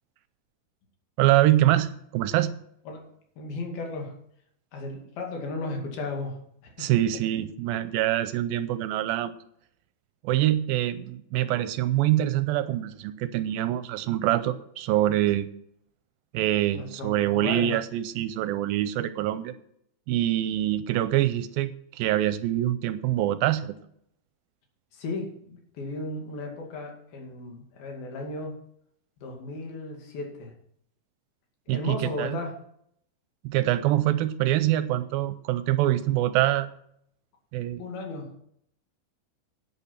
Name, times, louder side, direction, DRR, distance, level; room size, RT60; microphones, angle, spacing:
voice 1, 1.2-2.5 6.8-9.3 10.2-15.5 16.3-19.5 20.1-23.8 31.7-32.4 33.4-36.7 37.5-37.8, right 13 dB, 80° right, 13 dB, 2.3 m, -25 dB
voice 2, 3.4-4.1 4.7-6.4 6.6-6.9 16.7-17.7 24.9-28.6 29.2-30.5 31.7-32.6 37.8-38.3, left 2 dB, 75° left, 2 dB, 4.1 m, -35 dB
11.0 x 8.9 x 5.8 m, 0.69 s
omnidirectional pair, 4.4 m